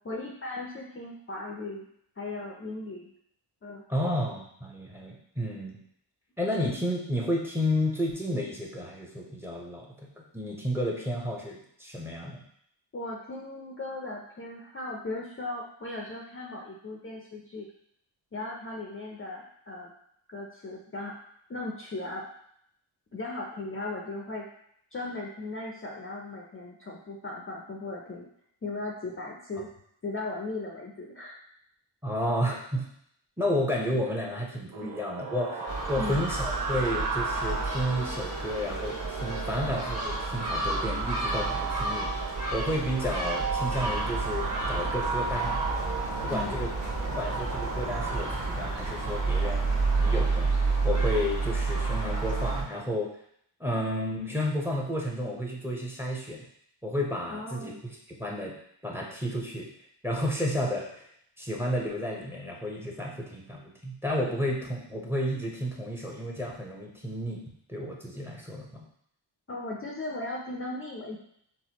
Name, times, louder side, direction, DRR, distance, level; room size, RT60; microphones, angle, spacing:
voice 1, 0.0-1.9 2.2-3.1 3.6-3.8 12.9-17.7 18.3-19.9 20.3-21.1 21.5-22.2 23.1-24.5 24.9-28.3 28.6-29.7 30.0-31.4 34.8-34.9 36.0-36.3 46.3-46.6 57.3-57.8 69.5-71.2, left 2 dB, 25° left, -2 dB, 0.5 m, -37 dB
voice 2, 3.9-5.8 6.4-9.9 10.3-12.4 32.0-32.9 33.4-45.6 46.2-46.7 47.1-50.5 50.8-53.1 53.6-56.4 56.8-57.7 58.1-58.6 58.8-59.7 60.0-61.1 61.4-67.4 67.7-68.8, equal, 5° right, -1 dB, 0.8 m, -31 dB
sound 1, 34.7-49.8, right 4 dB, 50° right, 0.6 m, -35 dB
Gull seagull, 35.7-52.6, right 3 dB, 35° right, 1.2 m, -30 dB
sound 2, 43.8-50.3, right 2 dB, 85° right, 0.7 m, -38 dB
4.1 x 2.2 x 2.9 m, 0.69 s
cardioid pair, 55°, 48 cm